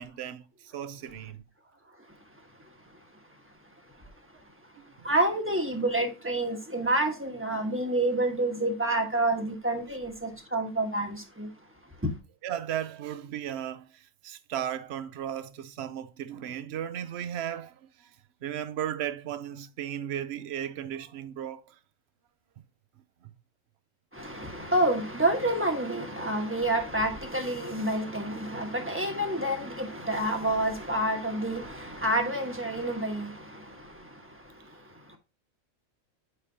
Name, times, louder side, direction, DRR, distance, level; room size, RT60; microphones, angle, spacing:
voice 1, 0.0-1.4 4.8-4.9 12.4-18.1 18.4-21.8 23.2-23.4, right 10 dB, 60° right, 0.8 m, -36 dB
voice 2, 2.0-11.5 11.8-12.1 24.1-35.2, right 1 dB, 10° right, 1.1 m, -29 dB
9.8 x 5.0 x 2.8 m
omnidirectional pair, 1.4 m